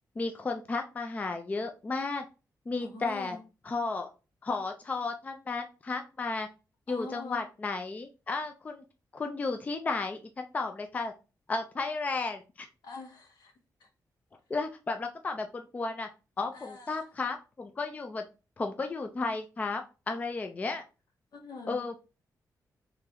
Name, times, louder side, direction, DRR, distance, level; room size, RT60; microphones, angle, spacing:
voice 1, 0.2-2.2 2.7-3.4 3.6-4.1 4.4-6.5 6.9-8.8 9.1-11.1 11.5-12.7 14.5-16.1 16.4-18.2 18.6-20.8 21.7-22.0, left 3 dB, 20° left, 5 dB, 0.3 m, -33 dB
voice 2, 2.8-3.4 6.9-7.4 12.8-13.5 13.8-13.9 16.5-17.0 21.3-21.8, left 3 dB, 75° left, 3 dB, 1.0 m, -44 dB
3.7 x 3.1 x 2.8 m, 0.31 s
wide cardioid pair, 165°, 7 cm